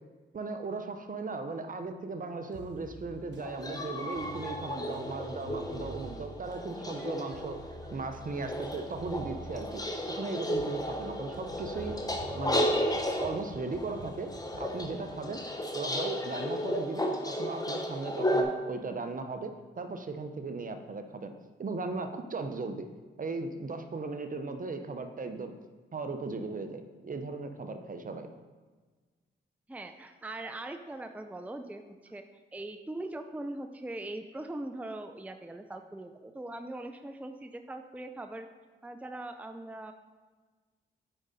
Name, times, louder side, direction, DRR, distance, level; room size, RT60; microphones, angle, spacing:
voice 1, 0.3-7.6 7.9-12.0 12.3-12.9 13.2-14.3 14.6-15.4 15.7-21.3 21.6-22.9 23.2-25.5 25.9-28.3, right 3 dB, 45° right, 7 dB, 0.8 m, -37 dB
sound 1, 2.5-15.3, right 2 dB, 65° right, 1.0 m, -48 dB
sound 2, 3.4-18.4, left 1 dB, 20° left, 1.2 m, -34 dB
voice 2, 29.7-31.8 32.1-32.2 32.5-38.5 38.8-39.9, right 2 dB, 5° right, 7 dB, 0.5 m, -41 dB
8.8 x 5.1 x 4.2 m, 1.4 s
supercardioid pair, 55°, 20 cm